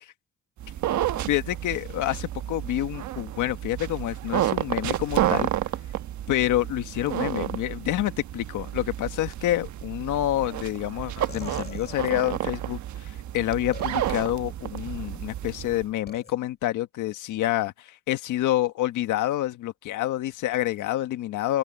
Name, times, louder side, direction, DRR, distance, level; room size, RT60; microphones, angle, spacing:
sound 1, 0.6-15.9, right 12 dB, 70° right, 1.2 m, -31 dB
voice 1, 1.3-5.5 6.3-21.6, left 14 dB, 85° left, 1.6 m, -28 dB
sound 2, 11.3-12.6 13.7-14.3 14.8-15.2 16.1-16.3, left 4 dB, 35° left, 7.8 m, -43 dB
open air
cardioid pair, 90°, 30 cm